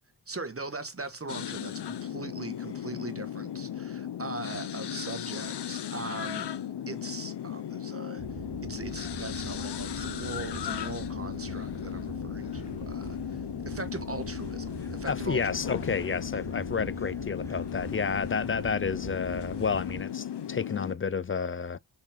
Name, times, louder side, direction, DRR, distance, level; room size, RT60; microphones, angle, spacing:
voice 1, 0.3-6.5 6.9-15.6, right 3 dB, 35° right, 1.5 m, -40 dB
sound 1, 1.3-21.0, left 10 dB, 70° left, 0.8 m, -36 dB
sound 2, 8.2-20.1, right 6 dB, 65° right, 1.7 m, -43 dB
sound 3, 14.4-19.8, left 1 dB, 5° left, 1.1 m, -56 dB
voice 2, 15.1-21.8, left 5 dB, 30° left, 0.4 m, -30 dB
5.5 x 5.1 x 5.0 m
cardioid pair, 55°, 41 cm